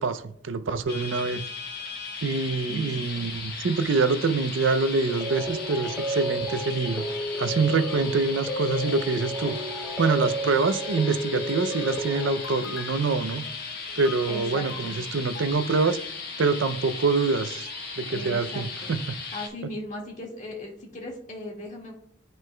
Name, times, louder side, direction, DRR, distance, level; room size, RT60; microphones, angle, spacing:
voice 1, 0.0-1.5 2.2-7.0 7.4-13.4 14.0-16.0 16.4-17.7 18.0-19.0, right 4 dB, 75° right, 12 dB, 0.5 m, -25 dB
sound 1, 0.9-19.5, left 4 dB, 55° left, 1.2 m, -37 dB
voice 2, 2.6-3.3 14.3-15.0 18.1-18.9 19.3-21.9, left 1 dB, 40° left, -1 dB, 1.8 m, -38 dB
sound 2, 5.1-12.5, right 1 dB, 5° right, 0.7 m, -32 dB
sound 3, 9.1-15.5, left 6 dB, 75° left, 0.7 m, -47 dB
10.5 x 4.5 x 2.2 m, 0.69 s
head